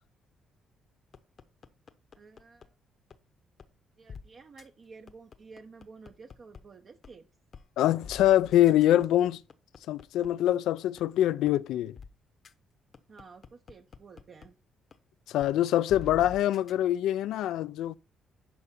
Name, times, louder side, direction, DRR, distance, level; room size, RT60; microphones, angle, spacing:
sound 1, 1.1-2.7 3.1-3.2 3.6-3.7 4.1-4.2 4.6-4.7 5.1-6.6 7.0-7.1 7.5-7.7 8.0-10.5 11.0-11.1 11.5-11.6 12.0-12.1 12.4-12.5 12.9-14.5 14.9-15.0 15.4-15.5 15.9-16.7, left 5 dB, 50° left, 0.9 m, -46 dB
voice 1, 2.1-2.7 4.0-7.3 13.1-14.5, right 4 dB, 50° right, 0.8 m, -51 dB
voice 2, 7.8-9.4 9.9-12.0 15.3-18.0, left 13 dB, 85° left, 0.4 m, -24 dB
11.0 x 4.9 x 4.3 m
cardioid pair, 90°, 0 cm